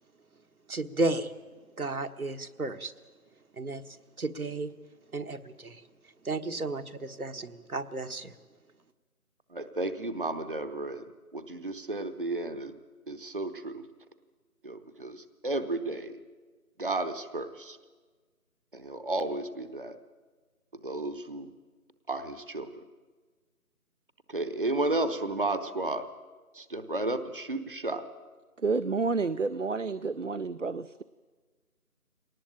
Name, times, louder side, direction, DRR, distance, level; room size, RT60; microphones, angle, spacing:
voice 1, 0.7-1.3 1.8-2.9 3.6-3.8 4.2-4.7 5.1-5.8 6.2-8.3, right 2 dB, 70° right, 8 dB, 1.4 m, -33 dB
voice 2, 9.5-11.1 11.3-12.7 13.1-13.8 14.6-16.2 16.8-17.8 18.7-20.0 20.8-21.5 22.1-22.8 24.3-26.1 26.5-28.1, right 2 dB, 35° right, 10 dB, 0.9 m, -33 dB
voice 3, 28.6-31.0, right 4 dB, 55° right, 13 dB, 0.6 m, -30 dB
20.5 x 19.0 x 9.0 m, 1.4 s
figure-of-eight pair, 170°, 44 cm